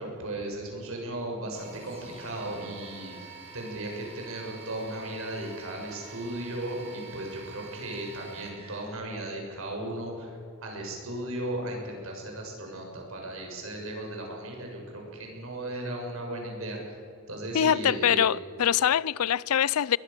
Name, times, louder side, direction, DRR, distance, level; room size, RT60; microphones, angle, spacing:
voice 1, 0.0-16.8 17.3-18.3, right 1 dB, 65° right, 6.7 m, -36 dB
sound 1, 1.5-8.9, right 5 dB, 30° right, 4.5 m, -47 dB
voice 2, 17.5-20.0, left 9 dB, 90° left, 0.5 m, -24 dB
21.5 x 21.5 x 6.9 m
head